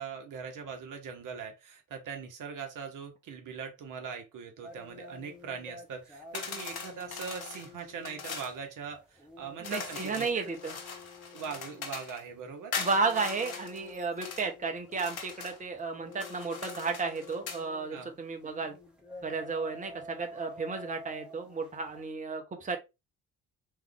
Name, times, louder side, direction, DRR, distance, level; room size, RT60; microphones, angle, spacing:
voice 1, 0.0-10.4 11.3-12.7 17.9-18.1, right 6 dB, 50° right, 1.0 m, -41 dB
sound 1, 4.6-22.1, left 2 dB, ahead, 1.4 m, -50 dB
sound 2, 6.3-8.6 9.6-12.2 12.7-14.5 14.9-15.6 16.1-17.6, left 5 dB, 85° left, 0.6 m, -41 dB
voice 2, 9.6-10.8 12.8-18.7 19.2-22.8, right 4 dB, 20° right, 0.9 m, -33 dB
3.5 x 3.2 x 3.4 m
figure-of-eight pair, 45°, 41 cm